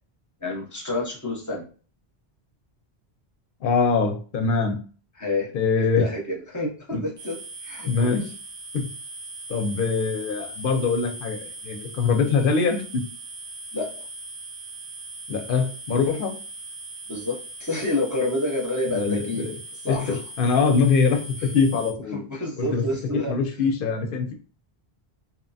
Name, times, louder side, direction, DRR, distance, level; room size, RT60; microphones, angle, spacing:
voice 1, 0.4-1.6 5.2-5.5 6.0-7.4 7.6-8.2 13.7-13.9 17.1-19.4 19.9-20.2 22.1-23.4, left 2 dB, 20° left, -2 dB, 0.7 m, -28 dB
voice 2, 3.6-4.8 5.5-6.1 6.9-7.0 7.9-8.3 8.7-8.9 9.5-13.0 15.3-16.3 18.9-19.5 19.8-22.2 22.6-22.8 23.3-24.3, left 5 dB, 65° left, 5 dB, 0.7 m, -23 dB
sound 1, 7.2-21.9, right 2 dB, 65° right, 0.7 m, -40 dB
2.8 x 2.1 x 2.6 m, 0.38 s
omnidirectional pair, 1.0 m